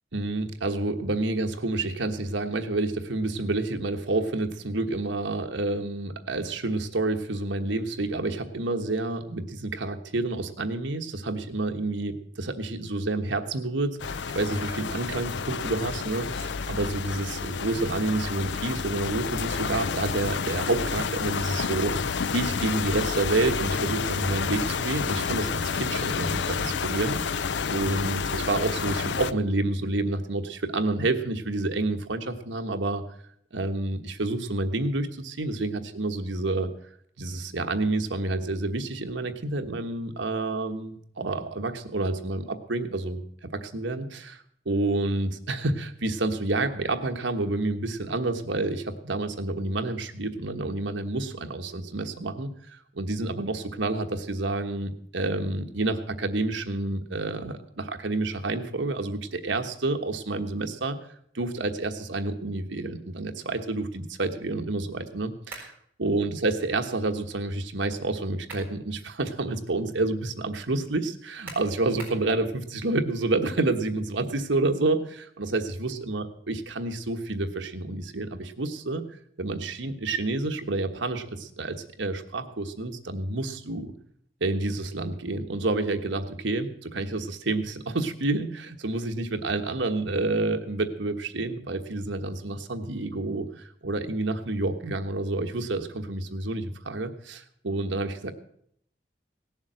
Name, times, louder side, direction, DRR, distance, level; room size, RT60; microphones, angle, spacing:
voice 1, 0.1-21.9 22.3-33.1 33.5-36.7 37.2-44.4 44.6-61.0 61.3-65.7 66.0-79.0 79.4-83.9 84.4-98.3, right 2 dB, 90° right, 6 dB, 1.3 m, -29 dB
sound 1, 14.0-29.3, left 5 dB, 75° left, 0.5 m, -30 dB
sound 2, 65.5-65.8 68.1-68.8 69.3-69.4 71.5-72.3, right 2 dB, 10° right, 4.3 m, -42 dB
18.0 x 7.3 x 7.6 m, 0.68 s
head